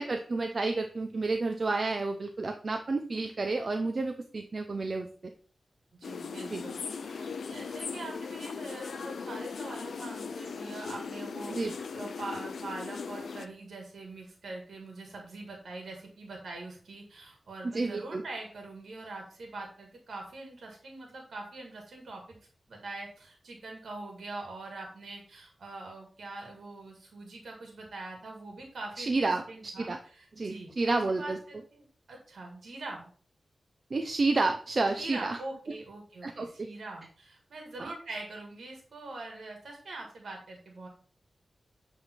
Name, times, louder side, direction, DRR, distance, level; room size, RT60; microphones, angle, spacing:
voice 1, 0.0-5.1 6.5-6.6 11.5-11.7 17.6-18.2 29.0-29.4 29.8-30.0 30.4-31.4 33.9-35.4 36.2-36.7 37.8-37.9, right 3 dB, 45° right, 5 dB, 0.6 m, -30 dB
voice 2, 5.9-22.4 22.7-30.7 31.2-33.1 35.0-40.9, right 2 dB, 85° right, 1 dB, 1.7 m, -43 dB
sound 1, 6.0-13.5, left 5 dB, 90° left, 0.5 m, -38 dB
8.0 x 3.5 x 4.4 m, 0.44 s
wide cardioid pair, 115°, 0 cm